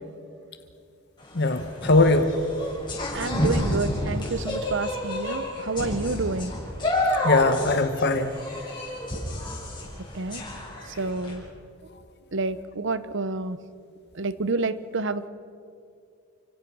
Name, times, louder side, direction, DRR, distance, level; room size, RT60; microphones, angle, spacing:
sound 1, 1.2-11.3, left 1 dB, 20° left, 7.3 m, -30 dB
voice 1, 1.3-2.3 7.2-8.4, left 2 dB, 50° left, 9 dB, 1.1 m, -21 dB
voice 2, 3.1-6.6 10.1-10.4 11.0-11.4 12.3-13.6 14.1-15.3, right 3 dB, 55° right, 15 dB, 0.8 m, -29 dB
30.0 x 17.0 x 6.3 m, 2.5 s
head